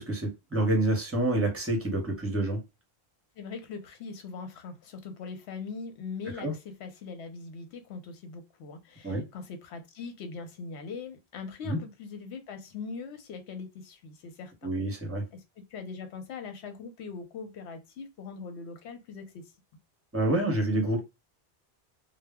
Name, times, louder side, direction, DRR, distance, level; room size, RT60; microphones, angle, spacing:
voice 1, 0.0-2.6 6.4-6.5 9.0-9.3 11.6-11.8 14.6-15.2 20.1-21.0, right 1 dB, 15° right, 0.7 m, -27 dB
voice 2, 3.4-14.7 15.3-19.4, left 5 dB, 80° left, 0.9 m, -41 dB
2.1 x 2.0 x 3.4 m
omnidirectional pair, 1.1 m